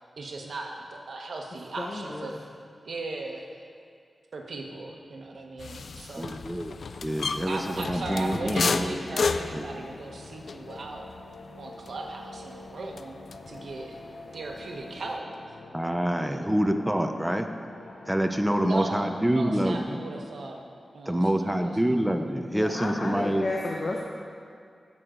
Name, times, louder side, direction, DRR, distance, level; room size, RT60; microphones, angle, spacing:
voice 1, 0.2-2.4 2.8-3.6 4.3-6.3 7.5-11.0 11.6-13.2 13.5-14.0 14.3-15.3 16.3-16.4 18.6-20.6 20.9-21.7, right 2 dB, 65° right, 1 dB, 1.1 m, -37 dB
voice 2, 1.8-2.3 22.5-24.0, left 2 dB, 40° left, -1 dB, 0.8 m, -32 dB
sound 1, 5.6-13.7 14.0-15.2, left 4 dB, 60° left, 0.3 m, -33 dB
voice 3, 6.2-6.8 7.0-9.7 15.7-17.5 18.1-20.0 21.1-23.4, right 1 dB, 5° right, 6 dB, 0.5 m, -26 dB
sound 2, 6.9-21.6, left 2 dB, 85° left, 1.0 m, -48 dB
15.5 x 6.2 x 3.8 m, 2.3 s
wide cardioid pair, 155°, 0 cm